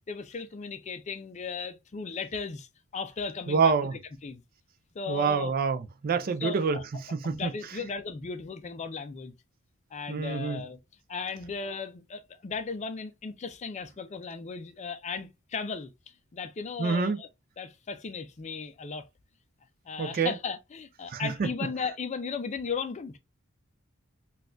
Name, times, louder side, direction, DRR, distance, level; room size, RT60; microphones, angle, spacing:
voice 1, 0.1-3.7 4.2-4.4 4.9-5.5 6.2-6.8 7.2-9.3 9.9-10.8 11.1-17.3 17.6-19.1 19.9-23.2, left 5 dB, 35° left, 0.4 m, -36 dB
voice 2, 3.5-3.9 5.1-6.8 7.1-7.5 10.1-10.6 16.8-17.2 20.0-20.3 21.1-21.5, right 5 dB, 45° right, 0.4 m, -26 dB
4.1 x 2.3 x 2.4 m
head